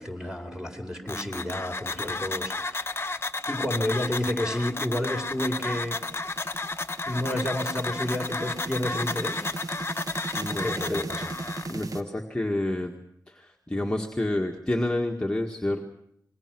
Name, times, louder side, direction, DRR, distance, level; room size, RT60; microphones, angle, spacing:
voice 1, 0.0-6.0 6.4-6.5 7.1-9.4 10.5-11.3, left 1 dB, 10° right, 3 dB, 4.2 m, -31 dB
sound 1, 1.1-11.7, left 3 dB, 35° left, 0.9 m, -32 dB
sound 2, 4.1-12.0, right 2 dB, 60° right, 1.4 m, -39 dB
voice 2, 10.4-11.0 11.7-12.9 13.3-15.8, left 1 dB, 10° left, 0 dB, 1.8 m, -29 dB
27.0 x 21.5 x 6.2 m, 0.73 s
wide cardioid pair, 75°, 7 cm